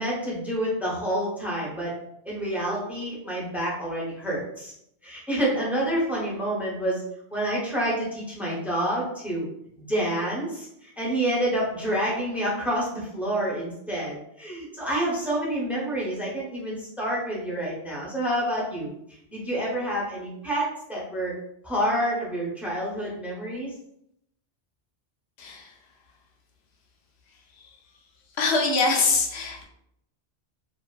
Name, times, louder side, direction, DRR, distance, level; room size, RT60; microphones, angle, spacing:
voice 1, 0.0-1.9 2.3-4.7 5.0-7.0 7.3-9.5 9.8-18.9 19.3-21.3 21.6-23.7, right 1 dB, ahead, -5 dB, 0.4 m, -28 dB
voice 2, 25.4-25.7 27.6-27.7 28.4-29.6, left 4 dB, 70° left, 1 dB, 0.8 m, -24 dB
2.5 x 2.4 x 2.2 m, 0.76 s
omnidirectional pair, 1.2 m